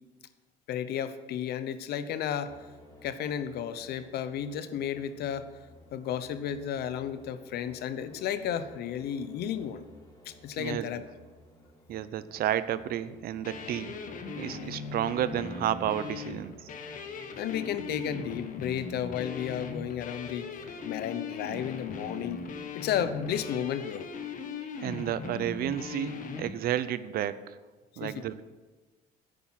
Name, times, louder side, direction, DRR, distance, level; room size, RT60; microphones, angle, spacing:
voice 1, 0.7-2.5 3.0-5.5 5.9-9.8 10.3-11.0 17.4-22.4 22.7-24.1 28.0-28.1, left 9 dB, 75° left, 12 dB, 0.8 m, -33 dB
sound 1, 2.5-20.9, equal, 20° left, 2.2 m, -55 dB
voice 2, 10.6-10.9 11.9-14.0 14.4-16.7 24.8-27.6 28.0-28.4, right 11 dB, 65° right, 15 dB, 0.6 m, -31 dB
sound 2, 13.4-26.5, left 5 dB, 50° left, 1.4 m, -39 dB
10.0 x 8.7 x 5.8 m, 1.2 s
cardioid pair, 110°, 17 cm